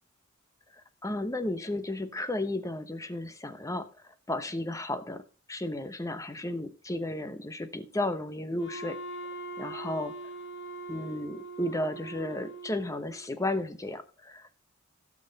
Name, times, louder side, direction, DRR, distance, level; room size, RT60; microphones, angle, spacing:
voice 1, 1.0-3.9 4.3-5.2 5.5-9.0 9.6-10.1 10.9-14.4, left 1 dB, 15° left, 0.9 m, -33 dB
Wind instrument woodwind instrument, 8.6-13.3, right 2 dB, 60° left, 1.2 m, -42 dB
16.0 x 6.3 x 4.0 m
head